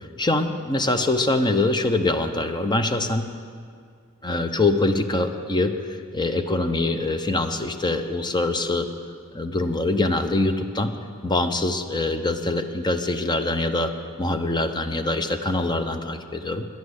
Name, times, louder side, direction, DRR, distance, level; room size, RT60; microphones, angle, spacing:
voice 1, 0.2-3.2 4.2-5.7 6.1-8.9 9.3-10.9 11.2-13.9 14.2-16.7, left 2 dB, 20° left, 8 dB, 0.7 m, -24 dB
10.5 x 8.6 x 9.6 m, 2.1 s
head